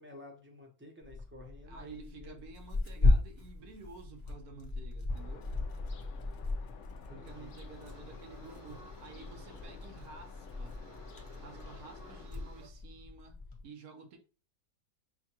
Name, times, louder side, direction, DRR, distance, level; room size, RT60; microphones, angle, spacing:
voice 1, 0.0-2.4 7.1-7.6, left 2 dB, 10° right, 0.6 m, -52 dB
Tearing, 1.0-13.6, left 3 dB, 25° left, 0.7 m, -36 dB
voice 2, 1.7-5.5 7.1-10.8 11.4-14.2, right 4 dB, 80° right, 1.3 m, -51 dB
sound 1, 5.1-12.3, left 7 dB, 65° left, 0.8 m, -53 dB
sound 2, 7.2-12.7, right 4 dB, 50° right, 1.0 m, -57 dB
6.2 x 2.2 x 2.9 m
omnidirectional pair, 1.6 m